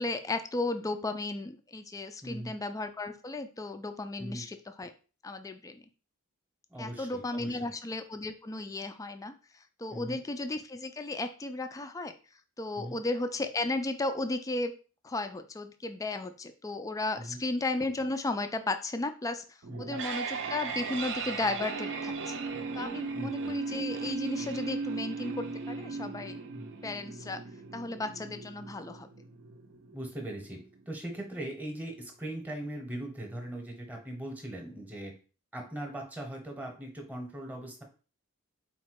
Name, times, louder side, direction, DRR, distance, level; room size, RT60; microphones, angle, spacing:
voice 1, 0.0-4.9 5.2-5.8 6.8-9.3 9.8-12.2 12.6-14.7 15.0-19.4 19.8-22.4 22.7-26.4 26.8-27.4 27.7-29.1, left 2 dB, 15° left, 8 dB, 0.3 m, -34 dB
voice 2, 2.2-2.5 4.2-4.4 6.7-7.7 9.9-10.2 12.7-13.0 17.2-17.4 19.7-20.0 23.1-23.6 26.5-26.7 29.9-35.1 35.5-37.8, right 1 dB, 5° right, 2 dB, 0.9 m, -40 dB
sound 1, 19.6-30.6, right 4 dB, 60° right, 0.6 m, -37 dB
4.0 x 2.2 x 4.6 m, 0.36 s
head